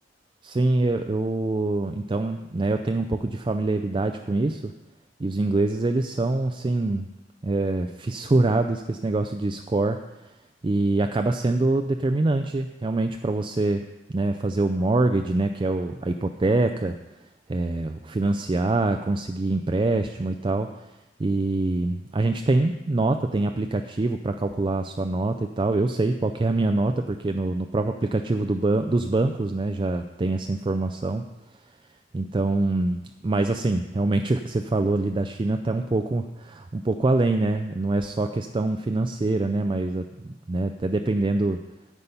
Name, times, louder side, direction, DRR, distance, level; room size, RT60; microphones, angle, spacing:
voice 1, 0.4-4.7 5.2-7.1 7.4-10.0 10.6-13.8 14.1-17.0 17.5-20.9 21.2-31.2 32.1-41.6, right 2 dB, 25° right, 6 dB, 0.4 m, -24 dB
9.8 x 8.3 x 5.5 m, 1.0 s
head